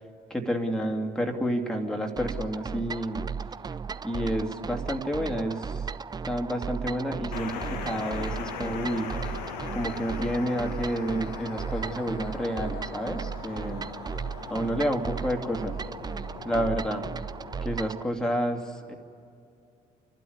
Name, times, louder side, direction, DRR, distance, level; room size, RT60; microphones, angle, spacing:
voice 1, 0.3-3.3 4.0-5.9 6.2-9.1 9.7-13.9 14.5-15.8 16.4-17.1 17.6-18.9, equal, 5° left, 2 dB, 2.5 m, -30 dB
sound 1, 2.2-18.0, right 6 dB, 20° right, 0.4 m, -35 dB
sound 2, 7.3-17.8, left 6 dB, 70° left, 1.3 m, -40 dB
29.5 x 12.5 x 9.6 m, 2.4 s
figure-of-eight pair, 45°, 21 cm